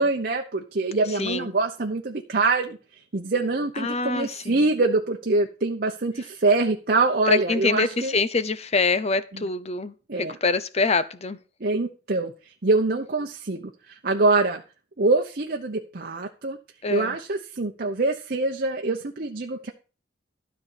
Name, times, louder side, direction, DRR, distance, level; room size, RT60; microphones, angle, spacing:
voice 1, 0.0-2.8 3.1-8.1 10.1-10.4 11.6-12.3 12.6-13.6 13.9-14.6 15.0-16.6 16.9-19.7, right 3 dB, 55° right, 3 dB, 1.0 m, -24 dB
voice 2, 1.2-1.5 3.8-4.6 7.3-11.4 16.8-17.2, left 4 dB, 35° left, 14 dB, 0.8 m, -25 dB
13.0 x 4.3 x 8.3 m, 0.35 s
head